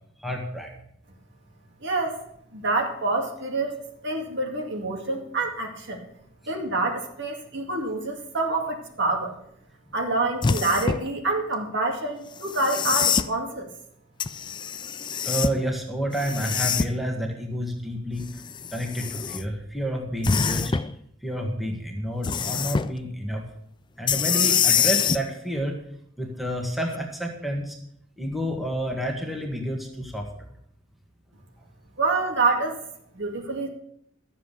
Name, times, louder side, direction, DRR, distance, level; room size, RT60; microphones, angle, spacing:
voice 1, 0.2-0.7 15.2-18.3 18.7-20.8 21.2-23.4 24.0-25.7 26.2-27.8 28.2-30.3, equal, ahead, 0 dB, 1.7 m, -29 dB
voice 2, 1.8-2.2 2.5-3.8 4.0-6.0 6.5-9.3 9.9-13.7 32.0-32.8 33.1-33.7, right 2 dB, 60° right, 2 dB, 2.3 m, -27 dB
sound 1, 10.4-11.1 12.4-13.3 14.2-15.6 16.1-17.1 18.2-19.4 20.2-20.9 22.2-22.9 24.1-25.2 26.9-27.0, left 6 dB, 25° left, 0.4 m, -25 dB
12.5 x 7.5 x 6.8 m, 0.72 s
head